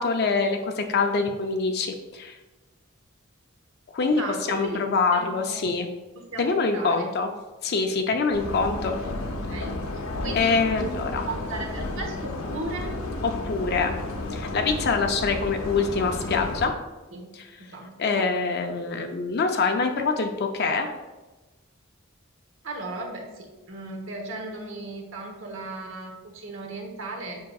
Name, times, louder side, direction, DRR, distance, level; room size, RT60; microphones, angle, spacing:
voice 1, 0.0-2.4 3.9-4.2 4.5-5.9 6.4-7.3 7.6-8.9 10.3-11.2 13.4-14.0 14.3-16.7 18.0-20.9, left 4 dB, 50° left, 4 dB, 0.5 m, -25 dB
voice 2, 4.0-4.8 5.1-5.7 6.2-7.1 9.4-10.9 11.3-12.9 17.1-17.2 17.6-18.3 22.6-27.4, right 2 dB, 65° right, 2 dB, 1.1 m, -36 dB
sound 1, 8.3-16.7, left 2 dB, 75° left, 0.8 m, -32 dB
7.5 x 5.5 x 2.3 m, 1.2 s
head